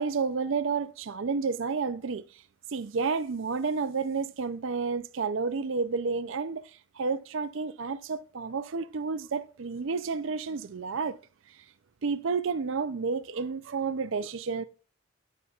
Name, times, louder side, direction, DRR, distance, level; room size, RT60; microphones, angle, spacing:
voice 1, 0.0-2.4 2.7-11.2 12.0-14.6, right 5 dB, 60° right, 0.5 m, -31 dB
13.5 x 6.6 x 2.4 m
head